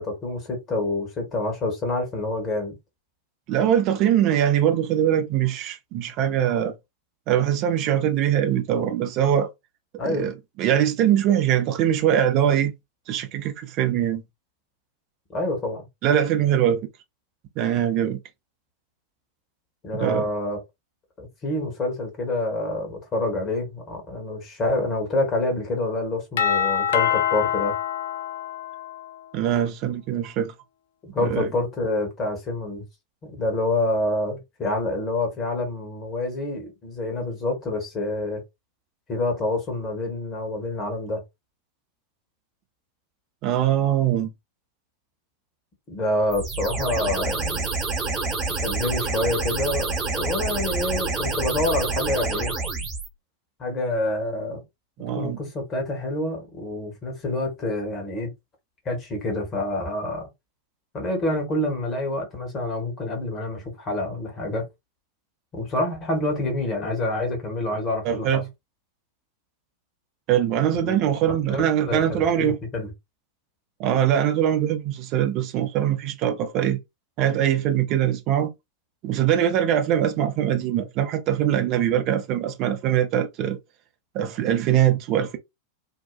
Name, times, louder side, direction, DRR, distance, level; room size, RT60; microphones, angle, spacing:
voice 1, 0.0-2.7 10.0-10.3 15.3-15.8 19.8-20.6 21.2-27.7 31.1-32.8 33.2-38.4 39.1-41.2 45.9-47.7 48.5-52.5 53.6-54.6 55.2-58.3 58.8-60.3 60.9-64.7 65.5-68.4 70.8-71.0 71.5-72.9, left 2 dB, 25° left, 1.3 m, -27 dB
voice 2, 3.5-6.7 7.3-9.5 10.0-12.7 13.1-14.2 16.0-16.9 17.6-18.2 19.9-20.3 29.3-30.5 31.2-31.5 43.4-44.3 55.0-55.4 68.0-68.5 70.3-72.6 73.8-76.8 77.2-78.5 79.0-83.6 84.1-85.4, right 10 dB, 40° right, 0.6 m, -22 dB
Doorbell, 26.4-29.2, left 9 dB, 60° left, 0.4 m, -25 dB
sound 1, 46.3-53.1, right 3 dB, 25° right, 0.9 m, -27 dB
2.8 x 2.3 x 2.2 m
figure-of-eight pair, 90°, 0 cm